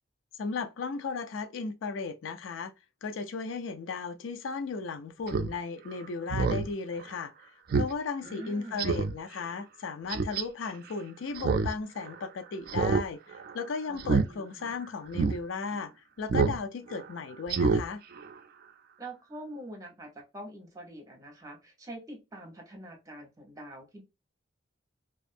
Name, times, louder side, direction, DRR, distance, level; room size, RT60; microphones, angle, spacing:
voice 1, 0.4-2.7 3.0-7.3 7.7-15.9 16.2-18.0, left 4 dB, 85° left, 0.4 m, -35 dB
Speech synthesizer, 5.3-5.5 5.9-6.0 6.3-6.7 7.1-7.2 7.7-7.9 8.3-8.4 8.8-9.1 10.1-10.4 11.4-11.7 12.0-12.1 12.7-13.0 13.3-13.6 14.0-14.3 14.7-14.8 15.1-15.4 16.3-16.6 16.9-17.0 17.5-17.8 18.2-18.3, right 4 dB, 55° right, 0.3 m, -26 dB
voice 2, 8.2-8.9 13.9-14.7 19.0-24.0, right 1 dB, 20° right, 1.0 m, -45 dB
2.5 x 2.4 x 2.5 m
head